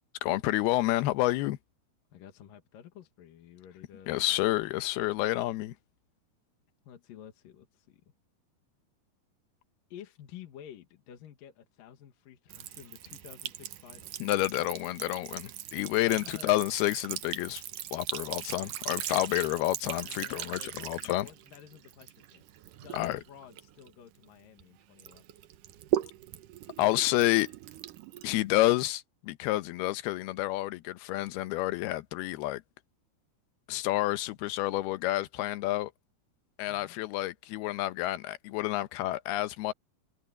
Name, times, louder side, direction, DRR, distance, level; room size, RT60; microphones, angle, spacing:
voice 1, 0.2-1.6 4.1-5.7 14.2-17.6 17.9-21.3 22.9-23.2 26.8-27.5 28.2-32.6 33.7-35.9 36.6-39.7, left 16 dB, 90° left, 2.8 m, -29 dB
voice 2, 2.1-4.3 6.8-8.0 9.9-14.6 16.2-16.7 18.9-19.2 20.0-22.4 22.8-25.2 36.7-36.9, left 10 dB, 65° left, 3.2 m, -51 dB
Sink (filling or washing) / Trickle dribble, 12.5-24.6 25.0-28.9, right 13 dB, 70° right, 2.3 m, -39 dB
omnidirectional pair, 4.4 m